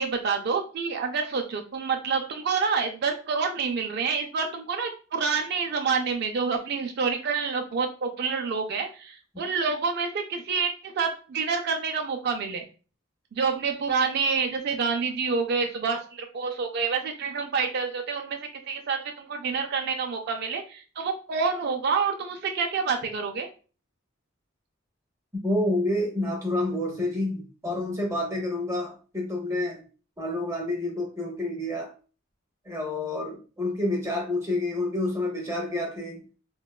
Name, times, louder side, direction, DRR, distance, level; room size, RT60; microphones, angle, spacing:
voice 1, 0.0-12.7 13.3-18.4 18.6-23.5, right 5 dB, 55° right, 3 dB, 0.3 m, -28 dB
voice 2, 25.3-29.8 30.2-31.9 32.7-36.2, left 1 dB, 15° right, 0 dB, 0.6 m, -28 dB
3.9 x 2.1 x 2.2 m, 0.37 s
head